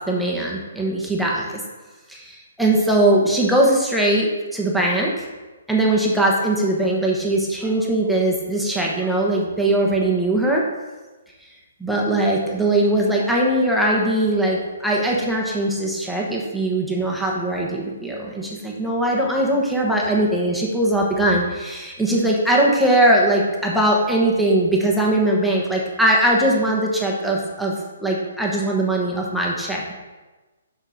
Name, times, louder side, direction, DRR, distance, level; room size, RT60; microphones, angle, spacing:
voice 1, 0.1-1.6 2.1-5.2 5.7-10.6 11.8-27.7 28.0-29.9, right 1 dB, ahead, -3 dB, 1.1 m, -20 dB
7.2 x 6.2 x 4.1 m, 1.2 s
hypercardioid pair, 150°, 0 cm